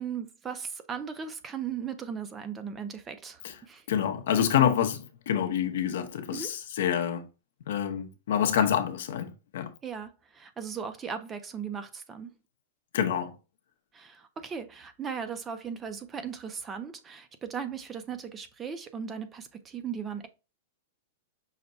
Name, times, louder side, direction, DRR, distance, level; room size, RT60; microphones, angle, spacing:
voice 1, 0.0-3.8 6.3-6.5 9.8-12.3 13.9-20.3, right 7 dB, 15° right, 0.5 m, -37 dB
voice 2, 3.9-7.3 7.7-9.7 12.9-13.4, left 9 dB, 70° left, 0.8 m, -27 dB
5.7 x 2.2 x 3.9 m
supercardioid pair, 160°, 0 cm